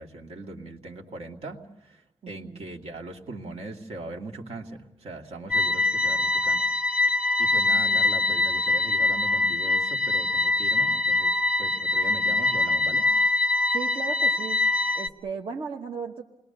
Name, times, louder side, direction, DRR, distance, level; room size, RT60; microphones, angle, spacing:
voice 1, 0.0-6.7 7.4-13.1, right 2 dB, 80° right, 2 dB, 2.2 m, -40 dB
voice 2, 2.2-2.7 7.9-8.0 13.7-14.6 14.9-16.2, right 5 dB, 60° right, 1 dB, 1.3 m, -36 dB
sound 1, 5.5-15.1, left 2 dB, 10° right, 0.8 m, -23 dB
29.0 x 21.0 x 6.8 m, 0.87 s
wide cardioid pair, 165°, 10 cm